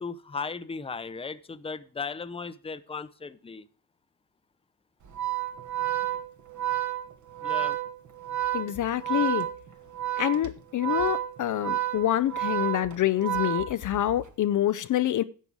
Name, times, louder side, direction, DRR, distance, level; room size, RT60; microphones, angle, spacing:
voice 1, 0.0-3.6 7.4-7.8, left 5 dB, 15° left, 0.7 m, -36 dB
Organ, 5.0-14.2, right 13 dB, 50° right, 1.5 m, -30 dB
voice 2, 8.5-9.5 10.2-15.2, left 12 dB, 55° left, 0.5 m, -26 dB
11.0 x 7.6 x 4.7 m
cardioid pair, 95°, 38 cm